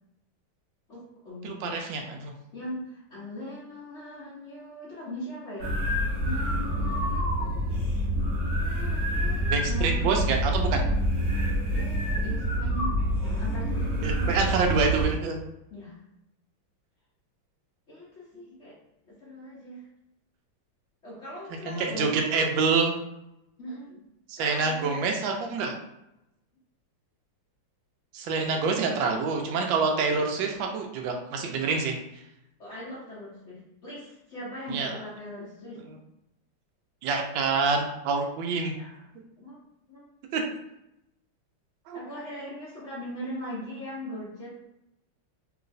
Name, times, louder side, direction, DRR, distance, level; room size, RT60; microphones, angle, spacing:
voice 1, 0.9-1.7 2.5-5.8 6.2-7.8 8.6-10.4 11.7-12.9 13.4-14.7 15.7-16.0 17.9-18.7 19.1-19.9 21.0-22.4 23.6-24.0 24.4-25.1 28.3-28.6 32.6-35.8 38.7-39.1 39.4-39.6 39.9-40.1 40.3-40.4 41.9-44.5, equal, 70° left, -9 dB, 0.6 m, -40 dB
voice 2, 1.4-2.3 9.5-10.9 14.0-15.4 21.7-22.9 24.3-25.7 28.1-32.0 34.7-34.9 37.0-38.7 40.3-40.4 41.9-42.0, right 4 dB, 75° right, 2 dB, 1.2 m, -26 dB
sound 1, 5.6-15.1, equal, 50° right, 0.9 m, -27 dB
3.1 x 2.9 x 2.5 m, 0.87 s
omnidirectional pair, 2.3 m